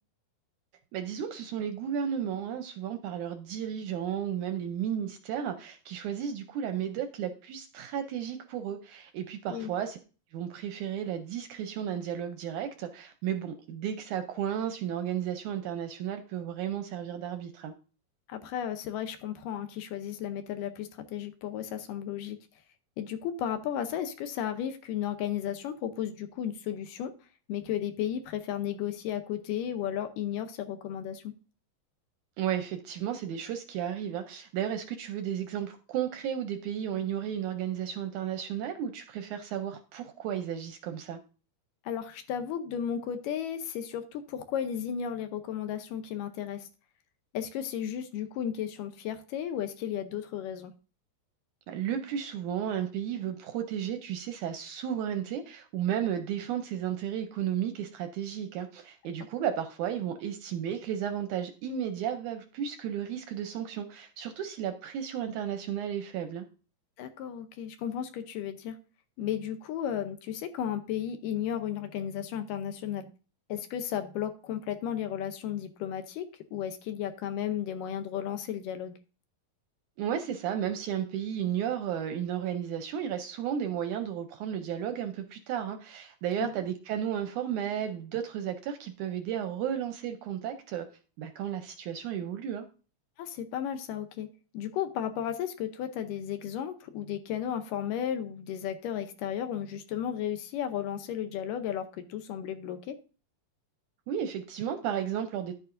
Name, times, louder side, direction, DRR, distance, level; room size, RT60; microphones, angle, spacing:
voice 1, 0.9-10.0 10.3-17.7 32.4-41.2 51.7-66.5 80.0-90.9 91.2-92.7 104.1-105.5, right 9 dB, 75° right, 1.8 m, -33 dB
voice 2, 18.3-22.4 23.0-27.1 27.5-31.2 41.9-46.7 47.3-50.7 67.0-68.8 69.2-73.1 73.5-78.9 86.4-86.5 93.2-94.3 94.5-103.0, left 9 dB, 75° left, 2.3 m, -34 dB
11.0 x 8.6 x 2.6 m
omnidirectional pair, 4.0 m